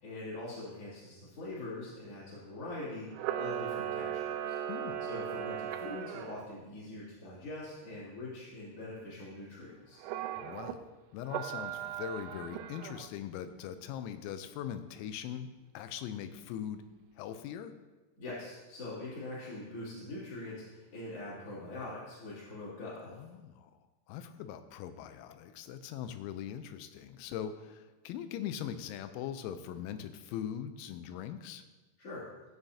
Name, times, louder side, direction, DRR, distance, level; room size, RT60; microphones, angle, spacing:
voice 1, 0.0-4.6 5.0-10.0 18.2-23.1 32.0-32.2, left 2 dB, 35° left, -13 dB, 2.9 m, -43 dB
Camera, 3.1-6.4 10.0-10.7 11.3-13.1, right 10 dB, 85° right, 2.9 m, -37 dB
voice 2, 4.7-5.1 10.4-16.8 17.2-17.7 23.1-23.7 24.1-31.6, left 9 dB, 90° left, 10 dB, 3.4 m, -41 dB
16.0 x 7.2 x 2.8 m, 1.2 s
omnidirectional pair, 6.0 m